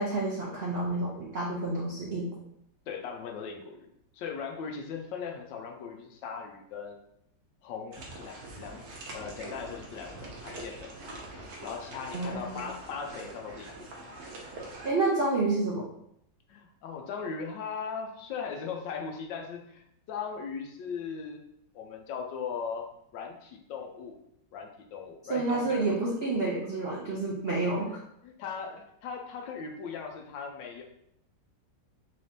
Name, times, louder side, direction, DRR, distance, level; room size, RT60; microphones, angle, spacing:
voice 1, 0.0-2.3 12.1-12.7 14.8-15.8 25.3-28.0, right 2 dB, 80° right, -4 dB, 0.5 m, -29 dB
voice 2, 2.9-3.9 4.1-7.0 7.6-8.8 9.1-10.9 11.6-13.9 16.5-21.4 21.7-22.9 23.1-24.2 24.5-25.8 27.9-30.8, left 6 dB, 80° left, 2 dB, 1.3 m, -38 dB
sound 1, 7.9-14.9, right 2 dB, 60° right, 1.2 m, -44 dB
4.1 x 3.3 x 2.7 m, 0.75 s
omnidirectional pair, 2.0 m